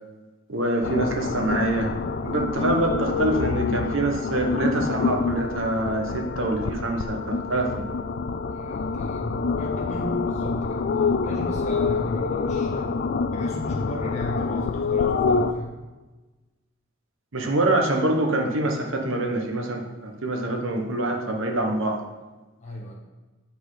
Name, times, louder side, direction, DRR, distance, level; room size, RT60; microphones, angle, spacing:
voice 1, 0.5-1.9 2.2-7.9 17.3-22.0, right 2 dB, 65° right, 3 dB, 1.1 m, -25 dB
sound 1, 0.8-15.5, left 4 dB, 50° left, 0.3 m, -27 dB
voice 2, 8.5-12.9 13.3-15.8 22.6-22.9, equal, 35° left, -2 dB, 1.5 m, -35 dB
8.0 x 4.2 x 4.9 m, 1.2 s
head